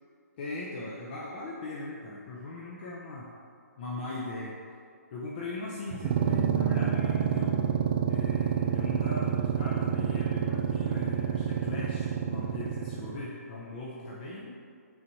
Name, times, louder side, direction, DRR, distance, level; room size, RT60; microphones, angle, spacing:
voice 1, 0.4-3.3 3.8-4.6 5.1-7.6 8.1-14.5, left 2 dB, 35° left, -5 dB, 0.8 m, -39 dB
sound 1, 5.9-13.3, right 8 dB, 40° right, 0.4 m, -28 dB
6.0 x 4.0 x 4.7 m, 2.3 s
hypercardioid pair, 145°, 9 cm